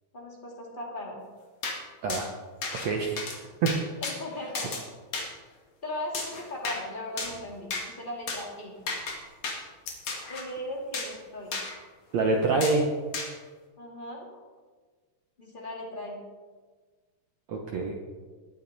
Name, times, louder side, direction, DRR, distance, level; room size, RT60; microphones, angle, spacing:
voice 1, 0.1-1.2 4.0-4.7 5.8-8.7 10.3-11.6 13.8-14.3 15.4-16.2, left 1 dB, 20° left, -2 dB, 1.5 m, -38 dB
sound 1, 1.6-1.8 2.1-2.2 2.6-2.9 3.2-3.4 3.7-4.2 4.5-4.8 5.1-5.3 6.1-6.8 7.2-7.4 7.7-7.8 8.3-8.4 8.9-9.2 9.4-9.6 10.1-10.4 10.9-11.1 11.5-11.7 12.6-12.8 13.1-13.3, left 4 dB, 45° left, 2.6 m, -33 dB
voice 2, 2.8-3.3 3.6-3.7 12.1-12.9 17.5-18.0, right 3 dB, 80° right, 1 dB, 1.5 m, -25 dB
sound 2, 8.7-11.5, left 5 dB, 85° left, 4.2 m, -50 dB
20.5 x 8.8 x 4.1 m, 1.4 s
omnidirectional pair, 4.7 m